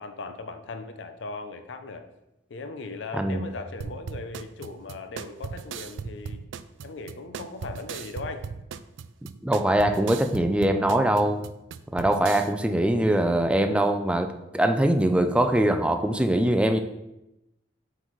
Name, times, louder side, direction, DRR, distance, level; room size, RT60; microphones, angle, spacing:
voice 1, 0.0-2.1 2.5-6.4 6.8-8.4, left 3 dB, 75° left, 8 dB, 0.5 m, -38 dB
sound 1, 3.8-12.5, right 6 dB, 90° right, 0.3 m, -38 dB
voice 2, 9.4-11.4 11.9-16.8, right 1 dB, 5° right, 7 dB, 0.4 m, -22 dB
7.7 x 3.9 x 3.1 m, 0.92 s
head